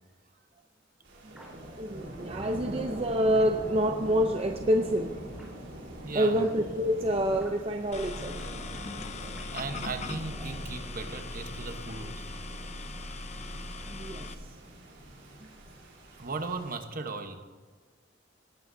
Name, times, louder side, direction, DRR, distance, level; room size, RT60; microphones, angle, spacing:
sound 1, 1.0-16.8, right 1 dB, 75° right, 3.8 m, -43 dB
sound 2, 1.4-1.5 2.4-2.6 3.4-3.5 4.4-4.5 5.4-5.5 6.4-6.5 7.4-7.6 8.4-8.5 9.4-9.7 10.4-10.6, equal, 5° right, 3.9 m, -51 dB
voice 1, 1.7-5.1 5.4-5.5 6.1-8.5 13.9-14.3 15.4-15.5, equal, 30° right, 4 dB, 0.6 m, -27 dB
voice 2, 6.0-6.4 9.5-12.4 16.1-17.4, right 3 dB, 50° right, 7 dB, 1.1 m, -37 dB
sound 3, 7.9-14.3, left 2 dB, 40° left, 0.7 m, -39 dB
18.5 x 12.5 x 2.7 m, 1.4 s
head